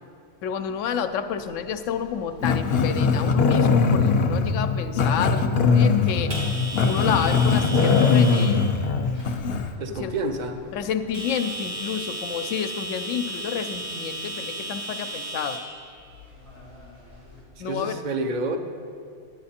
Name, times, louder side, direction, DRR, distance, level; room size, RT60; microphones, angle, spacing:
voice 1, 0.4-6.5 6.8-9.1 10.0-10.1 10.7-15.6 17.6-18.0, left 7 dB, 90° left, 9 dB, 1.0 m, -30 dB
sound 1, 1.3-17.4, right 1 dB, 90° right, 2.8 m, -37 dB
Growling, 2.4-9.7, left 5 dB, 60° left, 0.8 m, -21 dB
voice 2, 9.8-10.7 17.6-18.6, right 2 dB, 45° right, 6 dB, 0.7 m, -29 dB
11.0 x 9.6 x 4.2 m, 2.3 s
omnidirectional pair, 1.3 m